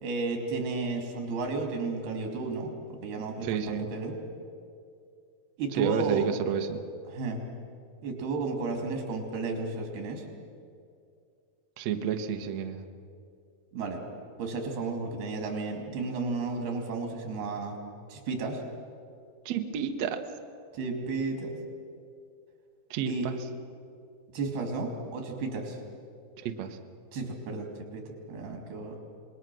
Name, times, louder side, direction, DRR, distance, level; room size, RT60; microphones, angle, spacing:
voice 1, 0.0-4.2 5.6-6.3 7.1-7.4 8.0-10.3 13.7-14.0 14.4-17.8 18.1-18.6 20.7-21.6 23.1-23.3 24.3-25.8 27.1-29.0, right 3 dB, 85° right, 3 dB, 4.5 m, -33 dB
voice 2, 3.4-3.9 5.8-6.8 11.8-12.8 19.5-20.2 22.9-23.3 26.4-26.8, right 8 dB, 65° right, 6 dB, 1.7 m, -30 dB
26.5 x 20.5 x 6.2 m, 2.4 s
omnidirectional pair, 4.4 m